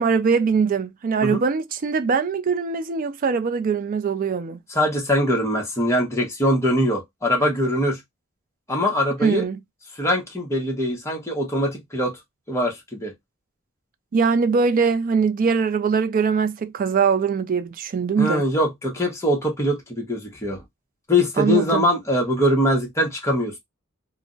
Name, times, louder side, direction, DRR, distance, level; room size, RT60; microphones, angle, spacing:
voice 1, 0.0-4.6 9.2-9.6 14.1-18.4 21.4-21.8, right 5 dB, 40° right, 0.3 m, -22 dB
voice 2, 4.7-8.0 8.7-9.4 10.0-12.1 12.5-13.1 18.2-20.6 21.1-23.6, equal, 15° left, 0.8 m, -22 dB
2.4 x 2.0 x 3.6 m
head